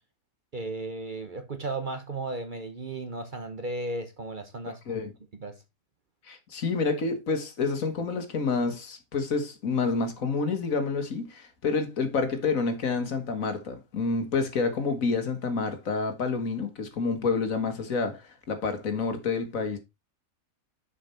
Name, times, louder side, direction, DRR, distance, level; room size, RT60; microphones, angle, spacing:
voice 1, 0.5-5.0 5.4-5.6, right 2 dB, 40° right, 0.9 m, -35 dB
voice 2, 6.2-19.8, left 4 dB, 70° left, 1.8 m, -28 dB
6.8 x 5.2 x 4.3 m
omnidirectional pair, 1.5 m